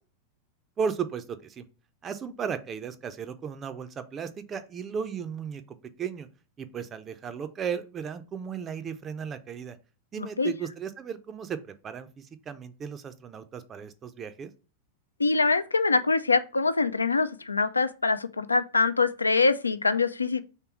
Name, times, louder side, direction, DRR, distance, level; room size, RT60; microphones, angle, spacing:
voice 1, 0.8-1.7 2.0-5.6 6.0-6.3 6.6-9.8 10.1-14.5, right 7 dB, 25° right, 0.4 m, -35 dB
voice 2, 10.2-10.5 15.2-20.4, left 4 dB, 80° left, 0.3 m, -24 dB
3.3 x 2.9 x 4.4 m
figure-of-eight pair, 90°, 0 cm